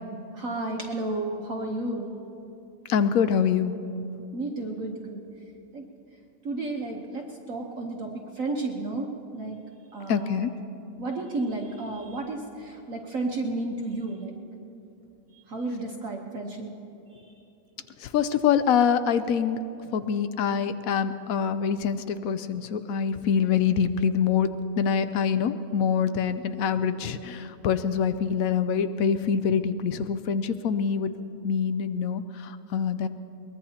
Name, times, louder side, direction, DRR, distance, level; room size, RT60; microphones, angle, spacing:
voice 1, 0.3-2.1 4.3-5.2 5.7-5.9 6.4-9.1 9.3-9.6 9.9-10.4 11.0-14.3 15.5-16.7 17.8-17.9, right 2 dB, 50° right, 0 dB, 1.4 m, -32 dB
voice 2, 2.9-3.7 10.1-10.5 18.0-19.6 19.9-24.5 24.8-31.1 31.4-33.1, left 7 dB, 70° left, 12 dB, 0.8 m, -25 dB
22.5 x 20.5 x 2.9 m, 2.9 s
omnidirectional pair, 1.9 m